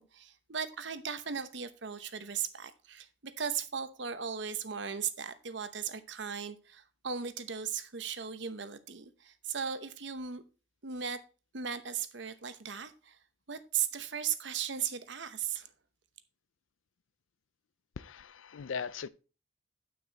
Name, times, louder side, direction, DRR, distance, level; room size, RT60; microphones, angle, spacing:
voice 1, 0.0-10.4 10.8-11.2 11.5-13.2 13.5-15.7, right 7 dB, 65° right, 0.9 m, -37 dB
voice 2, 18.0-19.1, left 6 dB, 85° left, 0.5 m, -39 dB
9.4 x 6.0 x 4.1 m
head